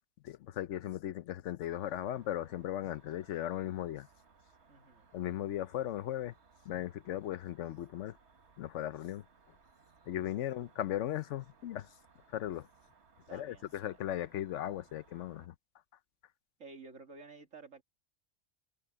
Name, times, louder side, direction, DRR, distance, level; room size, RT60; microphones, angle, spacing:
voice 1, 0.2-4.1 5.1-6.3 6.7-8.2 8.6-9.2 10.1-11.9 12.3-12.7 13.3-15.5, left 12 dB, 70° left, 0.9 m, -37 dB
Cricket, 1.6-15.5, right 4 dB, 60° right, 1.8 m, -65 dB
voice 2, 4.7-5.1 10.4-10.5 13.3-14.0 16.6-17.8, right 3 dB, 80° right, 2.8 m, -52 dB
omnidirectional pair, 1.3 m